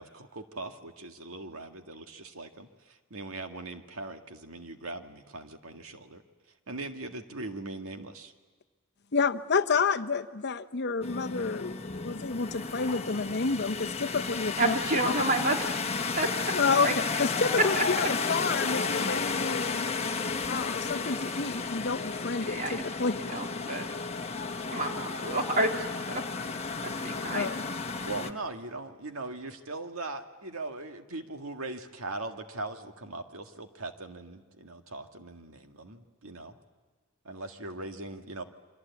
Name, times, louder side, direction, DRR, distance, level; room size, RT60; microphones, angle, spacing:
voice 1, 0.0-6.2 6.7-8.3 28.0-36.6 37.2-38.4, right 2 dB, 90° right, 6 dB, 1.9 m, -40 dB
voice 2, 9.1-11.7 12.0-14.7 15.0-15.1 16.5-16.9 17.2-19.9 20.5-23.1 27.3-27.6, left 4 dB, 55° left, 10 dB, 0.9 m, -29 dB
sound 1, 11.0-28.3, left 4 dB, 30° left, 1.3 m, -33 dB
voice 3, 14.6-16.6 16.8-17.2 17.7-17.8 22.5-22.8 23.3-23.9 24.7-26.3 26.8-27.6, right 2 dB, 40° right, 2 dB, 3.6 m, -30 dB
28.5 x 24.5 x 8.4 m, 1.4 s
head